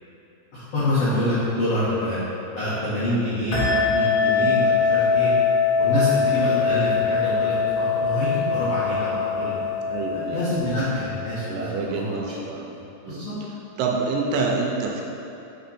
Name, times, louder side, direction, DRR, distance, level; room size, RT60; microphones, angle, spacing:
voice 1, 0.5-2.2 2.5-5.3 5.8-9.5 10.3-12.1 13.0-13.3, left 1 dB, 85° left, -12 dB, 1.4 m, -26 dB
sound 1, 3.5-11.7, left 5 dB, 65° left, 3.4 m, -23 dB
voice 2, 9.9-10.4 11.5-12.6 13.0-13.2 13.8-15.0, right 4 dB, 85° right, 0 dB, 2.9 m, -27 dB
6.2 x 6.1 x 4.2 m, 2.8 s
omnidirectional pair, 5.5 m